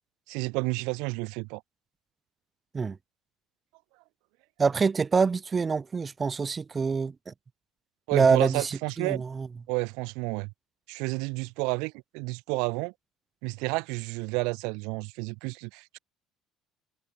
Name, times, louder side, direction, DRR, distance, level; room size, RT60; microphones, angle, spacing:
voice 1, 0.3-1.6 8.1-9.2 9.7-10.5 10.9-12.9 13.4-16.0, right 30 dB, 85° right, 0.5 m, -31 dB
voice 2, 4.6-7.3 8.1-9.5, right 5 dB, 25° right, 0.3 m, -26 dB
cardioid pair, 125°, 0 cm